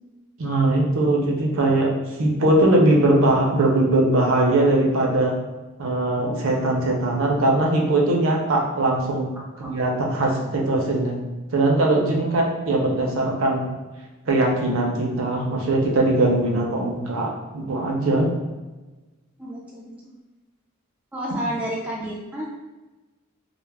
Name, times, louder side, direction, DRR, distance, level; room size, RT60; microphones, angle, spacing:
voice 1, 0.4-1.9 2.2-5.4 5.8-9.3 9.6-11.2 11.5-13.7 14.3-18.3, right 2 dB, 65° right, 0 dB, 0.5 m, -20 dB
voice 2, 19.4-20.1 21.1-22.5, right 1 dB, 5° right, -5 dB, 0.3 m, -30 dB
2.2 x 2.0 x 3.2 m, 1.2 s
head